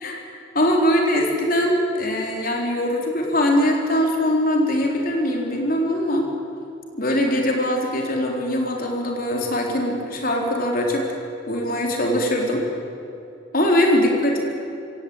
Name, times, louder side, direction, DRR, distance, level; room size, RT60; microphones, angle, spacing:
voice 1, 0.5-6.3 7.0-11.1 11.5-12.6 13.5-14.4, left 1 dB, 45° left, 1 dB, 3.9 m, -21 dB
26.0 x 16.5 x 8.9 m, 2.7 s
head